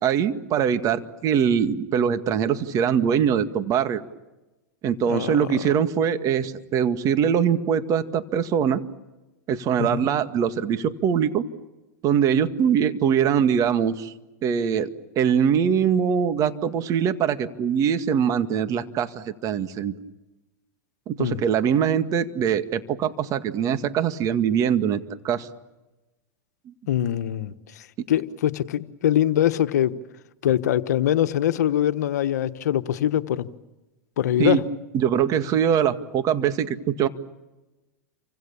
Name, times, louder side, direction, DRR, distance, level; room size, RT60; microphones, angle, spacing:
voice 1, 0.0-4.0 4.8-8.8 9.5-11.4 12.0-14.1 14.4-19.9 21.1-25.5 26.7-26.8 34.4-34.6 34.9-37.1, right 8 dB, 40° right, 2.0 m, -22 dB
voice 2, 5.1-5.7 9.8-10.0 21.2-21.4 26.9-29.9 30.4-33.5 34.2-34.6, left 11 dB, 75° left, 1.3 m, -23 dB
30.0 x 25.5 x 7.1 m
hypercardioid pair, 110°, 9 cm